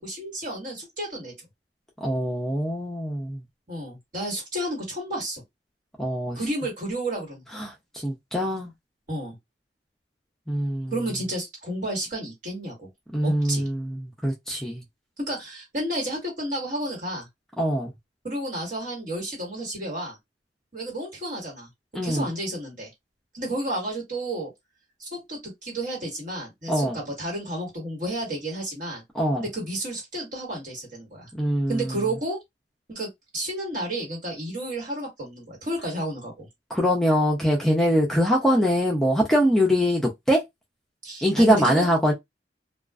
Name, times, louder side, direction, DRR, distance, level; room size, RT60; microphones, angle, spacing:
voice 1, 0.0-1.3 3.7-5.4 6.3-7.7 9.1-9.3 10.9-12.9 13.2-13.7 15.2-17.3 18.2-20.2 20.7-21.7 22.0-22.9 23.3-24.5 25.0-29.0 29.4-31.3 31.7-32.4 32.9-36.5 41.0-41.8, right 1 dB, 50° right, 1.5 m, -31 dB
voice 2, 2.0-3.4 6.0-6.4 7.5-7.7 8.0-8.7 10.5-10.9 13.1-14.8 17.6-17.9 21.9-22.3 26.7-27.0 29.1-29.4 31.3-32.0 36.7-40.4 41.2-42.1, equal, 5° left, 0.5 m, -23 dB
2.3 x 2.3 x 2.3 m
head